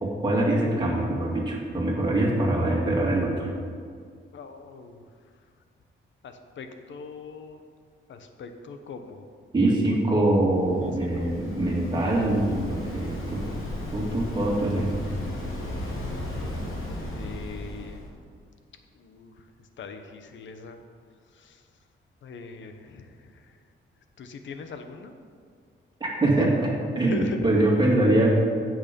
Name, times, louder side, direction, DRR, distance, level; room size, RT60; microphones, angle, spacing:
voice 1, 0.0-3.5 9.5-13.4 13.9-14.9 26.0-28.3, right 1 dB, 20° right, -3 dB, 2.3 m, -23 dB
voice 2, 4.3-5.0 6.2-7.6 8.1-9.2 9.9-10.0 10.8-11.3 17.1-18.2 18.9-19.5 19.8-20.8 21.3-21.6 22.2-23.6 24.2-25.2 27.0-27.5, left 5 dB, 65° left, 7 dB, 1.0 m, -41 dB
Waves surf, 10.4-18.1, left 1 dB, 80° left, 2.6 m, -35 dB
15.0 x 6.4 x 5.3 m, 2.1 s
wide cardioid pair, 175°, 21 cm